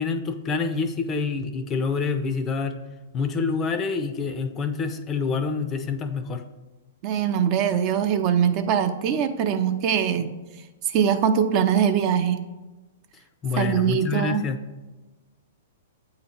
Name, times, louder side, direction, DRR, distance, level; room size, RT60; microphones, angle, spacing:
voice 1, 0.0-2.8 3.1-6.4 13.4-14.6, left 5 dB, 25° left, 9 dB, 0.4 m, -27 dB
voice 2, 7.0-10.3 10.9-12.4 13.6-14.5, right 8 dB, 40° right, 8 dB, 0.5 m, -22 dB
7.8 x 2.9 x 4.3 m, 1.1 s
hypercardioid pair, 125°, 0 cm